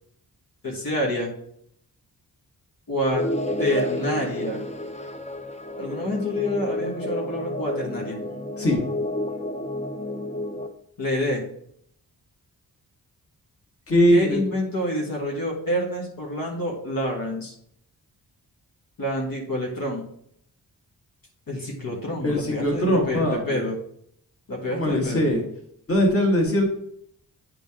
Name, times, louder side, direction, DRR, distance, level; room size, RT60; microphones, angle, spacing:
voice 1, 0.6-1.3 2.9-3.2 3.6-4.6 5.8-8.2 11.0-11.4 14.1-17.5 19.0-20.1 21.5-23.8 24.5-25.3, left 1 dB, 65° left, -2 dB, 1.7 m, -27 dB
sound 1, 3.1-10.7, left 1 dB, 20° left, 0.6 m, -30 dB
voice 2, 13.9-14.4 22.2-23.6 24.7-25.4 25.9-26.7, equal, 40° left, 0 dB, 1.8 m, -21 dB
9.1 x 3.9 x 3.7 m, 0.68 s
wide cardioid pair, 105°, 36 cm